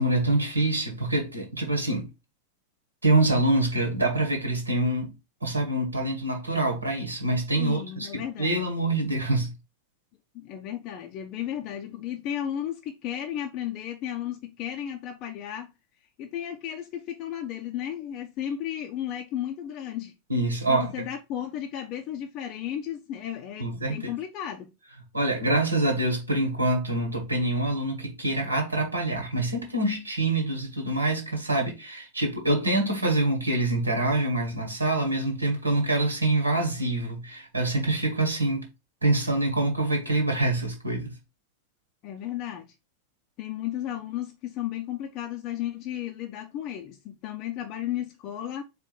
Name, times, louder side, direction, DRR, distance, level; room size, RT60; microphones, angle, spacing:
voice 1, 0.0-2.1 3.0-5.1 5.4-9.5 20.3-21.1 23.6-24.1 25.1-38.7 39.0-41.1, right 2 dB, 80° right, 1.4 m, -25 dB
voice 2, 7.6-8.6 10.3-15.7 16.2-20.1 20.7-24.7 42.0-42.7 43.4-48.6, left 11 dB, 40° left, 0.6 m, -34 dB
4.4 x 2.5 x 4.5 m
figure-of-eight pair, 90°, 0 cm